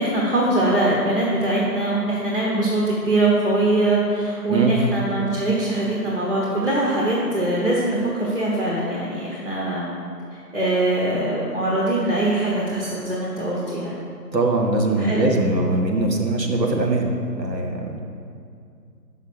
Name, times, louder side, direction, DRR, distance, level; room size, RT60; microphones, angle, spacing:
voice 1, 0.0-9.9 10.3-14.1 15.0-15.3, right 2 dB, 45° right, -4 dB, 1.1 m, -22 dB
voice 2, 14.3-18.1, right 2 dB, 85° right, 1 dB, 1.3 m, -22 dB
5.8 x 5.6 x 6.1 m, 2.4 s
figure-of-eight pair, 160°, 49 cm